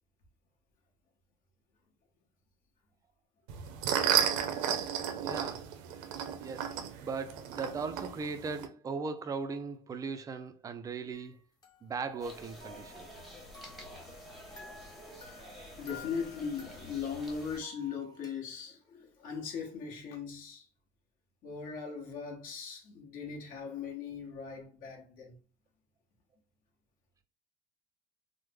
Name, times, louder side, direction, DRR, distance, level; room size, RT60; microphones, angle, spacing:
sound 1, 3.5-8.7, right 9 dB, 90° right, 0.5 m, -32 dB
voice 1, 5.2-5.8 6.4-11.4 11.8-13.4, right 4 dB, 20° right, 0.3 m, -39 dB
sound 2, 11.1-12.4 12.6-14.1 14.5-18.4, left 4 dB, 20° left, 0.9 m, -54 dB
sound 3, 12.2-17.6, equal, ahead, 0.9 m, -49 dB
voice 2, 15.8-20.7 21.4-25.4, left 6 dB, 55° left, 1.0 m, -39 dB
3.1 x 2.0 x 3.4 m
cardioid pair, 135°, 17 cm